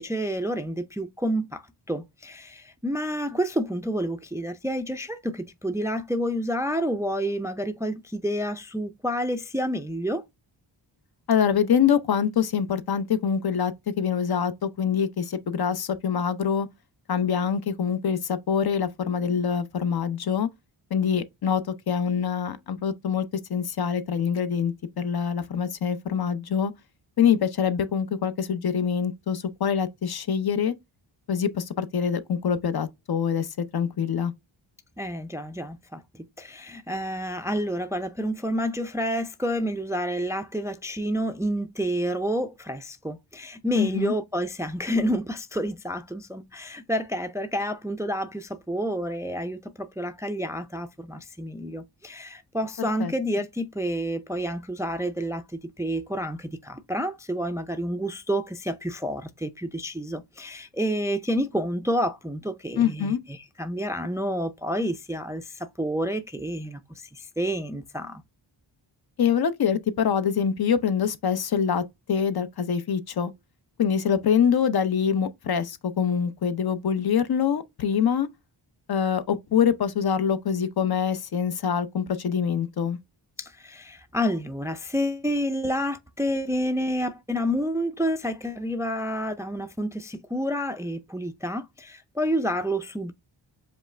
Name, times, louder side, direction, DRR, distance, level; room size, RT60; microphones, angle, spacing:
voice 1, 0.0-10.2 35.0-55.4 55.8-68.2 83.4-93.1, equal, 5° right, 0.4 m, -29 dB
voice 2, 11.3-16.7 17.1-20.5 20.9-21.6 21.9-26.7 27.2-30.7 31.3-34.3 43.8-44.1 52.8-53.1 62.8-63.2 69.2-71.8 72.1-73.3 73.8-78.3 78.9-83.0, left 7 dB, 50° left, 0.7 m, -25 dB
5.2 x 2.4 x 3.2 m
cardioid pair, 80°, 47 cm